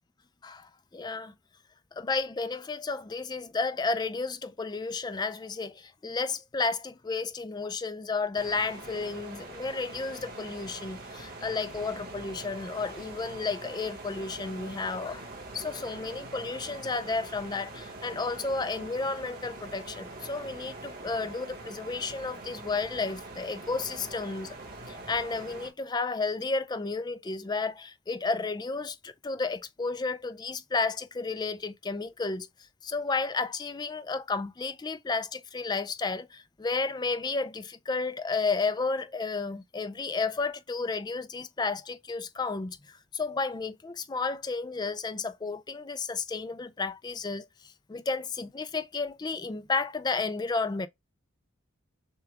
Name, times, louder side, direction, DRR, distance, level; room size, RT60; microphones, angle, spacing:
voice 1, 0.4-1.3 1.9-24.6 24.9-32.5 32.8-50.9, left 4 dB, 20° left, 0.3 m, -32 dB
sound 1, 8.3-25.7, right 2 dB, 45° right, 1.4 m, -43 dB
6.7 x 2.3 x 3.4 m
head